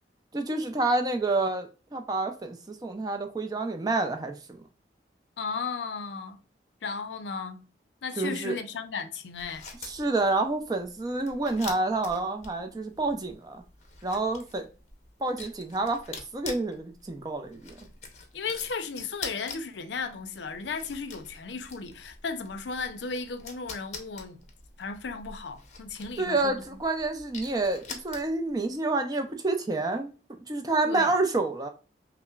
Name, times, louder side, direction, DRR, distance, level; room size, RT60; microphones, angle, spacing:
voice 1, 0.3-4.6 8.2-8.6 9.8-13.6 14.0-14.7 15.2-17.7 26.2-30.1 30.5-31.7, right 2 dB, 20° right, 0.5 m, -28 dB
voice 2, 5.4-6.4 6.8-7.6 8.0-9.6 18.3-24.4 24.8-26.6 30.9-31.1, left 5 dB, 85° left, 0.5 m, -35 dB
sound 1, 9.3-28.6, left 4 dB, 40° left, 0.6 m, -45 dB
5.5 x 2.0 x 2.3 m
head